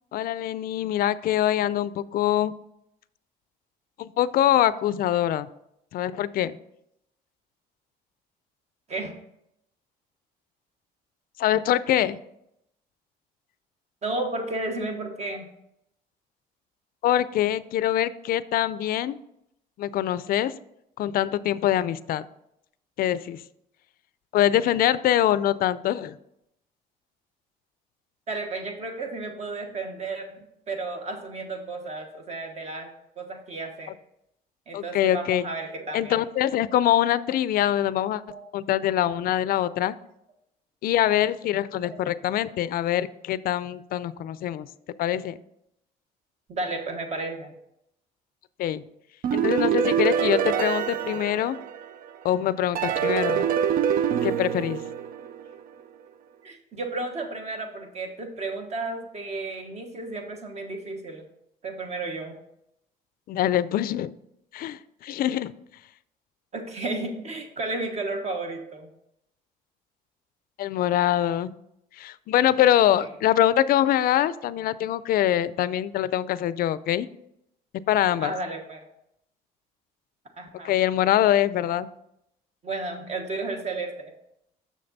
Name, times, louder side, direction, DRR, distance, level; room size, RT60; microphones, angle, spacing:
voice 1, 0.1-2.5 4.0-5.5 5.9-6.6 11.4-12.2 17.0-19.2 19.8-20.5 21.0-22.2 23.0-23.4 24.3-26.2 34.7-35.5 35.9-38.2 38.5-39.9 40.8-44.7 45.0-45.4 48.6-48.8 49.3-51.6 52.2-53.5 54.2-54.8 63.3-64.1 64.5-65.5 70.6-71.5 72.0-77.1 77.9-78.3 80.6-81.9, left 12 dB, 60° left, 17 dB, 0.4 m, -24 dB
voice 2, 14.0-15.5 28.3-32.9 33.2-33.9 34.7-36.2 38.3-38.4 46.5-47.5 56.4-61.2 61.6-62.4 66.5-68.9 78.2-78.9 80.4-80.7 82.6-84.1, right 2 dB, 40° right, 4 dB, 1.3 m, -33 dB
sound 1, 49.2-52.1 52.7-55.6, right 9 dB, 55° right, 0.5 m, -25 dB
6.6 x 6.5 x 4.0 m, 0.79 s
cardioid pair, 110°, 17 cm